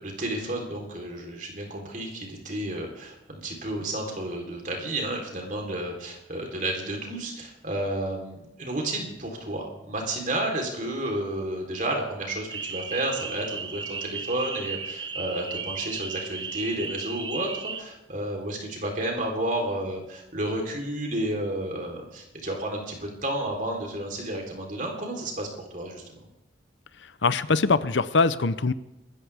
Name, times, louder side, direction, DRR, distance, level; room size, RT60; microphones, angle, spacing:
voice 1, 0.0-26.2, right 1 dB, 45° right, 1 dB, 3.8 m, -31 dB
sound 1, 12.5-17.8, right 5 dB, 25° right, 0.8 m, -35 dB
voice 2, 27.0-28.7, left 4 dB, 75° left, 15 dB, 0.7 m, -23 dB
27.0 x 14.0 x 3.6 m, 0.93 s
head